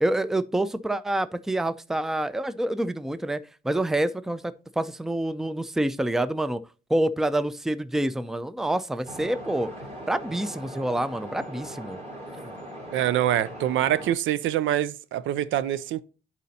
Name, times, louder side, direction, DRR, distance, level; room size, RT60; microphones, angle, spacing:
voice 1, 0.0-6.6 6.9-9.7 10.1-12.0 12.4-12.5, right 1 dB, ahead, 0.4 m, -27 dB
sound 1, 9.1-14.1, equal, 35° right, 3.3 m, -40 dB
voice 2, 12.9-16.0, right 12 dB, 75° right, 0.4 m, -25 dB
10.5 x 4.2 x 2.7 m
cardioid pair, 90°, 20 cm